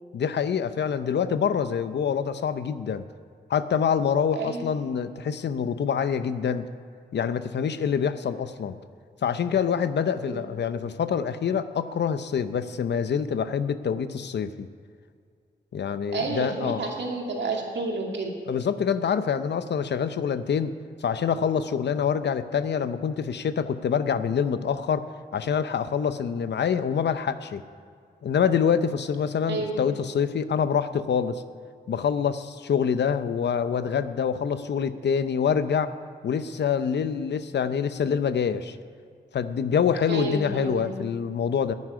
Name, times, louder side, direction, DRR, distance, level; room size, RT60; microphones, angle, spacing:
voice 1, 0.1-3.0 3.5-6.7 7.1-8.8 9.2-14.7 15.7-16.8 18.5-20.7 21.0-25.1 25.3-27.6 28.2-31.4 31.9-35.9 36.2-38.8 39.3-41.7, left 7 dB, 80° left, 12 dB, 0.7 m, -26 dB
voice 2, 4.3-4.7 10.2-10.4 16.1-18.3 29.5-29.8 40.1-41.0, right 3 dB, 80° right, 0 dB, 2.3 m, -30 dB
9.6 x 9.6 x 10.0 m, 2.2 s
cardioid pair, 45°, 18 cm